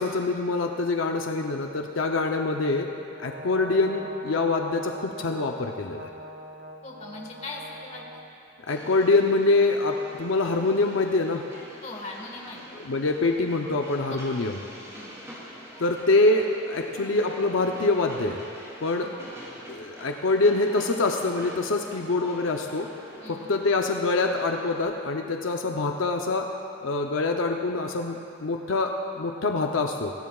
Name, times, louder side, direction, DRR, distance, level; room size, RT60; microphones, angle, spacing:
voice 1, 0.0-2.9 3.2-6.1 8.7-11.4 12.8-14.6 15.8-18.4 18.8-19.1 19.7-22.9 23.3-26.5 26.8-30.1, left 3 dB, 80° left, 3 dB, 0.7 m, -25 dB
Brass instrument, 3.1-8.3, right 1 dB, 50° right, 0.9 m, -42 dB
voice 2, 6.8-8.0 11.8-12.6 14.9-15.1 19.0-19.3 23.2-23.6, left 2 dB, 35° left, -1 dB, 1.6 m, -40 dB
Train, 8.7-24.8, equal, 15° right, 2.7 m, -45 dB
21.5 x 16.0 x 2.4 m, 2.7 s
head